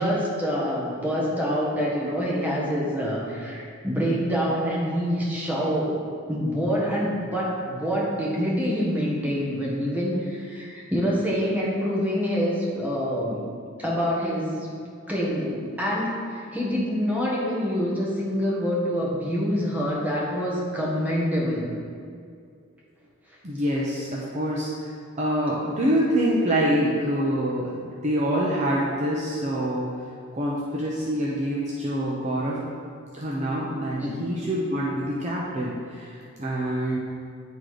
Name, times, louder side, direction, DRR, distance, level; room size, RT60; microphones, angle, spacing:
voice 1, 0.0-6.0 6.3-13.4 13.8-14.7 15.1-21.7 34.0-34.1, equal, 5° right, -5 dB, 1.4 m, -26 dB
voice 2, 23.4-24.9 25.2-29.9 30.3-32.6 33.1-36.1 36.4-37.0, equal, 35° right, -5 dB, 0.8 m, -26 dB
9.4 x 3.9 x 4.9 m, 2.3 s
head